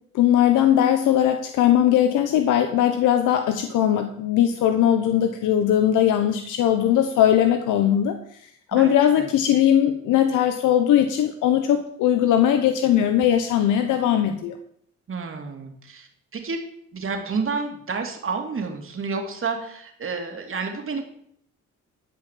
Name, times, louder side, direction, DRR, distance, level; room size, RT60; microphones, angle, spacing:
voice 1, 0.1-8.2 8.7-14.6, left 10 dB, 85° left, 7 dB, 1.1 m, -19 dB
voice 2, 8.7-9.3 15.1-16.1 16.3-16.6 16.9-21.0, right 4 dB, 45° right, 4 dB, 2.8 m, -30 dB
13.0 x 5.5 x 7.5 m, 0.67 s
cardioid pair, 90°, 30 cm